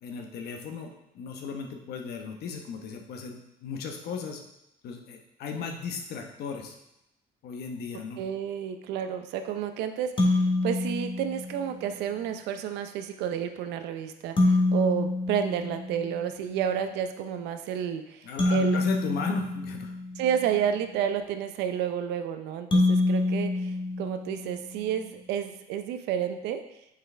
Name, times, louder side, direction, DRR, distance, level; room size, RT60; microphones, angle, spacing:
voice 1, 0.0-4.4 4.8-6.7 7.4-8.2 18.2-19.9, left 5 dB, 70° left, 3 dB, 1.0 m, -36 dB
voice 2, 8.2-18.8 20.2-23.7 24.0-26.6, right 9 dB, 90° right, 8 dB, 0.6 m, -30 dB
sound 1, 10.2-11.8 14.4-16.4 18.4-20.5 22.7-24.8, left 2 dB, 30° left, 1.3 m, -27 dB
6.7 x 4.7 x 3.3 m, 0.86 s
cardioid pair, 110°, 17 cm